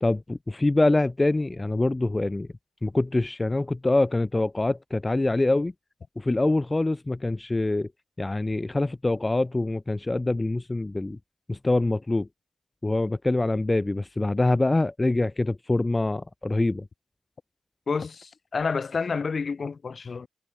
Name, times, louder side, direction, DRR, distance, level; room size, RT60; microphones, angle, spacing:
voice 1, 0.0-2.5 2.8-5.7 6.2-7.9 8.2-11.2 11.5-12.3 12.8-16.9, left 2 dB, 30° left, 0.6 m, -25 dB
voice 2, 17.9-20.3, left 5 dB, 60° left, 2.7 m, -29 dB
cardioid pair, 50°, 0 cm